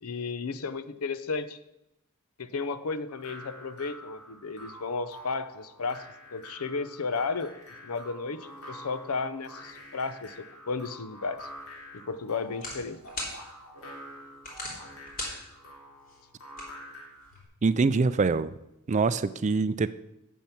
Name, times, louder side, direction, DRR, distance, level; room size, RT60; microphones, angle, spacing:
voice 1, 0.0-1.6 2.4-6.0 6.3-7.5 7.8-11.5 11.9-13.0, left 4 dB, 90° left, 13 dB, 0.7 m, -33 dB
sound 1, 3.1-17.3, equal, 65° left, 3.5 m, -47 dB
sound 2, 11.4-17.4, left 1 dB, 40° left, 3.3 m, -43 dB
voice 2, 17.6-18.5 18.9-19.9, right 4 dB, 35° right, 14 dB, 0.4 m, -24 dB
8.8 x 7.4 x 5.9 m, 0.86 s
head